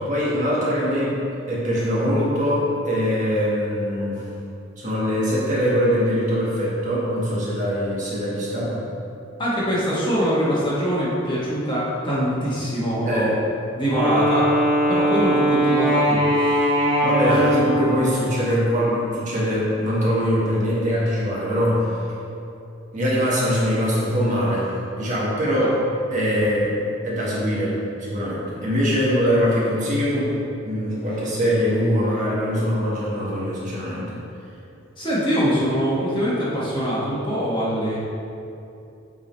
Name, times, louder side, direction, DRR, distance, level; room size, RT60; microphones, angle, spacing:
voice 1, 0.1-1.2 1.5-4.2 4.8-8.8 13.0-13.3 17.0-22.0 22.9-25.8 26.1-30.3 30.6-34.0, equal, 35° right, -7 dB, 1.6 m, -22 dB
voice 2, 9.4-13.3 13.7-14.5 14.9-16.7 17.3-17.4 25.6-25.7 35.0-38.0, equal, 25° left, -7 dB, 1.3 m, -23 dB
Wind instrument woodwind instrument, 13.9-18.2, equal, 60° right, 1.6 m, -20 dB
8.1 x 3.8 x 4.4 m, 2.7 s
head